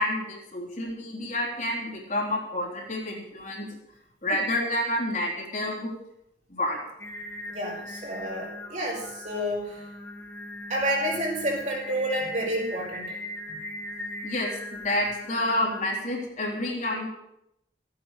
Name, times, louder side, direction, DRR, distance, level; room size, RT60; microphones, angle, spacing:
voice 1, 0.0-3.7 4.2-5.9 6.5-6.8 14.2-17.1, left 1 dB, 45° left, -2 dB, 3.5 m, -29 dB
Singing, 7.0-15.8, left 1 dB, 10° left, 1.6 m, -39 dB
voice 2, 7.5-9.9 10.7-13.2 13.5-13.6, right 1 dB, 40° right, -2 dB, 5.2 m, -29 dB
15.5 x 9.0 x 6.8 m, 0.84 s
head